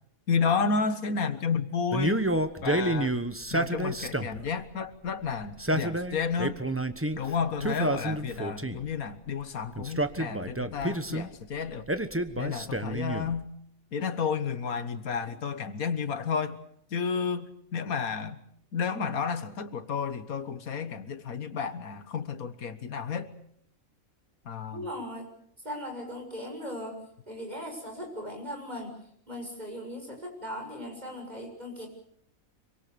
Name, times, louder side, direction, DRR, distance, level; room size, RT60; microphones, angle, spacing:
voice 1, 0.3-2.2 2.6-3.2 3.5-6.6 7.2-11.8 12.4-13.5 13.9-16.6 16.9-18.4 18.7-23.3 24.4-24.9, left 5 dB, 85° left, 11 dB, 1.8 m, -31 dB
Male speech man speaking, 1.9-4.5 5.4-7.2 7.6-8.9 9.8-11.3 11.9-13.4, right 1 dB, 10° right, 1.0 m, -29 dB
voice 2, 24.7-25.3 25.6-27.0 27.3-28.9 29.3-31.9, equal, 30° right, 2 dB, 7.1 m, -38 dB
26.5 x 24.5 x 6.9 m, 0.68 s
omnidirectional pair, 1.5 m